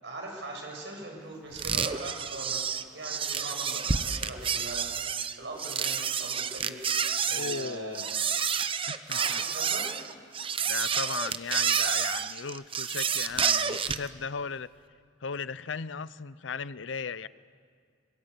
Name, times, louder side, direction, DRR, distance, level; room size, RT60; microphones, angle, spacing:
voice 1, 0.0-8.1 9.1-9.9, right 2 dB, 70° right, 0 dB, 6.6 m, -41 dB
sound 1, 1.6-14.1, right 7 dB, 30° right, 0.8 m, -29 dB
voice 2, 7.3-8.1 8.9-9.4 10.7-14.7 15.2-17.3, left 5 dB, 80° left, 17 dB, 0.6 m, -36 dB
24.0 x 21.5 x 8.2 m, 2.2 s
head